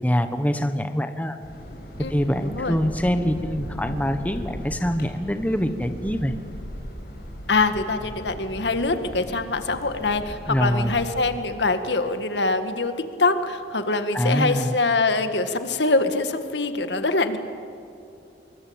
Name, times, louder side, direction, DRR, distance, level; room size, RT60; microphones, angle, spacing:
voice 1, 0.0-1.4 2.1-6.4 10.5-11.0 14.1-14.8, equal, 10° left, 8 dB, 1.2 m, -24 dB
sound 1, 1.4-11.4, equal, 60° left, 6.4 m, -37 dB
voice 2, 2.4-2.8 7.5-12.9 13.2-17.4, left 3 dB, 85° left, 8 dB, 1.9 m, -24 dB
25.5 x 23.5 x 8.9 m, 2.8 s
head